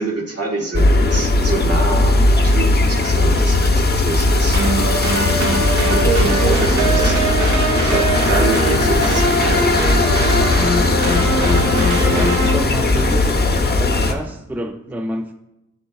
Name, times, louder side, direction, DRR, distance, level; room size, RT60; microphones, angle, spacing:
voice 1, 0.0-4.6 5.1-10.6, right 3 dB, 50° right, 1.5 m, -26 dB
sound 1, 0.7-14.1, left 2 dB, 30° left, 0.8 m, -17 dB
sound 2, 3.6-8.0, left 1 dB, 10° left, 1.2 m, -37 dB
sound 3, 4.5-12.5, right 2 dB, 75° right, 1.6 m, -21 dB
voice 2, 12.0-15.3, right 1 dB, 5° right, 0.5 m, -29 dB
8.3 x 7.3 x 2.3 m
cardioid pair, 55°, 30 cm